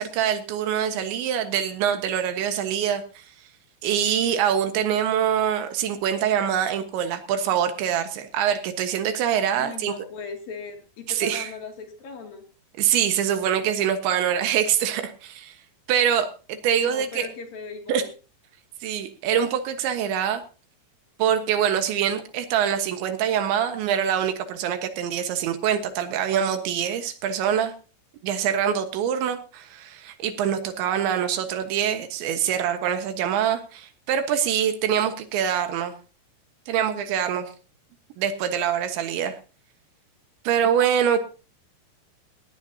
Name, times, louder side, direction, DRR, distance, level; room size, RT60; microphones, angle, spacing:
voice 1, 0.0-3.2 3.8-10.0 11.1-11.5 12.8-15.6 15.9-17.3 17.9-18.0 18.8-20.4 21.2-27.7 28.2-35.9 36.7-37.5 38.2-39.4 40.5-41.2, right 9 dB, 75° right, 8 dB, 3.6 m, -24 dB
voice 2, 9.5-12.4 16.8-18.1, left 5 dB, 55° left, 4 dB, 3.9 m, -38 dB
19.0 x 16.5 x 2.8 m, 0.34 s
omnidirectional pair, 5.5 m